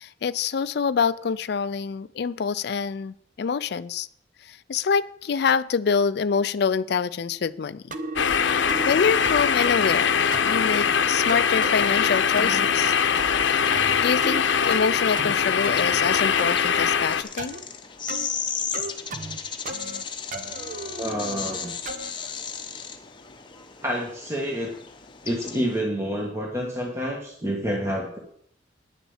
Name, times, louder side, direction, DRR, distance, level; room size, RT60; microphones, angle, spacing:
voice 1, 0.0-4.1 4.4-8.0 8.9-12.9 14.0-17.5, left 6 dB, 60° left, 13 dB, 0.4 m, -26 dB
sound 1, 7.9-8.3 8.7-8.9 9.2-9.9 10.3-10.6 11.3-11.8 12.4-12.7 13.2-13.5 13.7-14.4 14.7-15.4 15.6-16.5 17.4-17.6 18.1-18.3 18.7-19.4 19.7-20.0 20.3-22.1, right 2 dB, 45° right, 0.9 m, -35 dB
sound 2, 8.2-17.2, left 7 dB, 80° left, 0.7 m, -22 dB
sound 3, 12.8-25.8, left 6 dB, 25° left, 0.9 m, -36 dB
voice 2, 21.0-21.8 23.8-24.7 25.2-28.2, equal, 15° right, -1 dB, 1.5 m, -28 dB
10.0 x 7.0 x 7.3 m, 0.66 s
head